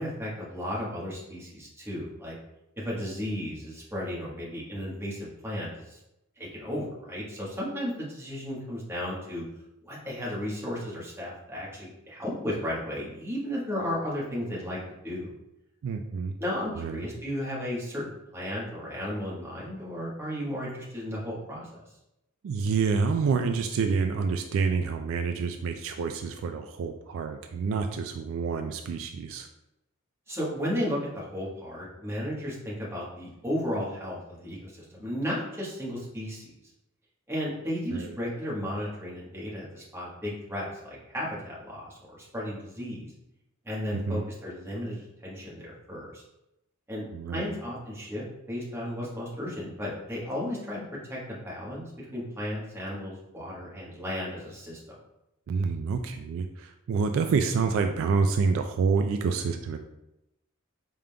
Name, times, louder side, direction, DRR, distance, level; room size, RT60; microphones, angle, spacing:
voice 1, 0.0-2.3 2.8-6.0 6.4-9.4 9.8-15.3 16.4-21.7 30.3-36.5 37.3-43.1 43.6-46.2 46.9-47.1 47.3-50.8 51.1-54.8, equal, 10° right, -6 dB, 1.2 m, -34 dB
voice 2, 15.8-16.4 16.7-17.0 22.4-29.5 37.9-38.2 43.9-44.3 47.1-47.5 55.5-59.8, right 5 dB, 65° right, 6 dB, 0.3 m, -28 dB
5.1 x 3.6 x 2.2 m, 0.89 s
head